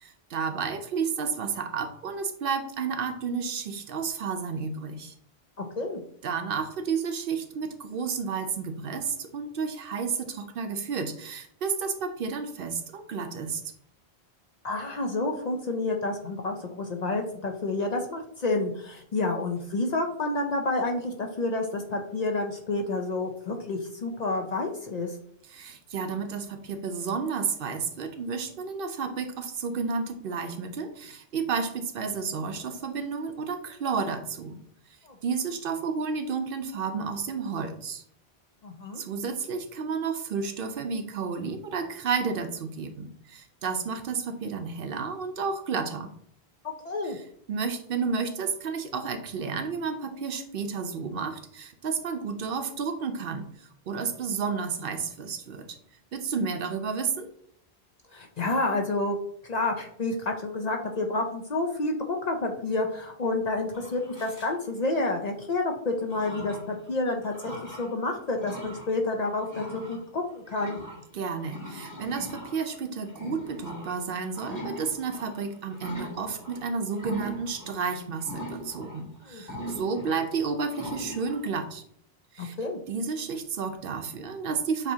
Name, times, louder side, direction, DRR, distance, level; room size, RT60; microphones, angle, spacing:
voice 1, 0.0-5.1 6.2-13.6 25.4-34.6 35.2-38.0 39.0-46.1 47.0-55.7 56.1-57.3 71.1-81.8 82.3-82.6 82.9-84.9, right 5 dB, 65° right, 7 dB, 0.7 m, -31 dB
voice 2, 14.6-25.1 35.0-35.2 38.6-39.0 46.8-47.2 58.1-59.2 59.4-61.9 62.3-70.8 79.3-79.4 82.4-82.8, left 2 dB, 50° left, 3 dB, 0.5 m, -29 dB
sound 1, 63.7-64.5 65.3-65.4 66.0-66.9 67.2-67.9 68.3-68.9 69.2-76.6 76.9-77.8 78.2-81.5, equal, 15° left, 2.1 m, -41 dB
7.1 x 2.8 x 2.7 m, 0.66 s
omnidirectional pair, 1.1 m